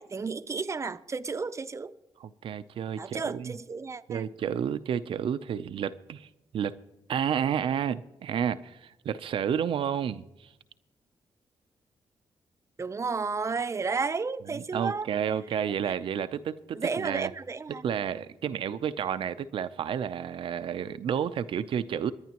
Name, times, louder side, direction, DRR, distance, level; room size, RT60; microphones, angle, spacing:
voice 1, 0.0-1.9 3.0-4.3 12.8-15.1 15.9-16.0 16.7-17.9, right 4 dB, 35° right, 0.6 m, -32 dB
voice 2, 2.2-3.5 4.1-6.3 6.5-6.7 7.1-10.2 14.5-17.3 17.8-22.1, right 8 dB, 75° right, 0.6 m, -31 dB
24.5 x 10.5 x 3.0 m
cardioid pair, 85°, 9 cm